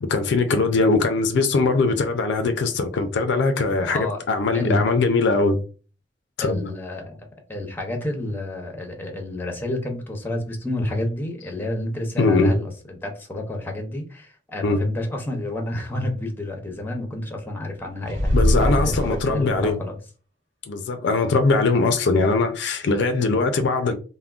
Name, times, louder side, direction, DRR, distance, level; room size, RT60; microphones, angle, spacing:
voice 1, 0.0-5.6 6.4-6.6 12.2-12.5 14.6-14.8 18.3-19.8 20.7-23.9, left 3 dB, 65° left, 0.4 m, -21 dB
voice 2, 3.8-4.2 4.5-4.9 6.4-7.2 7.5-19.9, left 1 dB, 10° left, 0.6 m, -29 dB
sound 1, 18.1-19.7, equal, 80° right, 1.1 m, -22 dB
3.5 x 2.1 x 2.3 m
head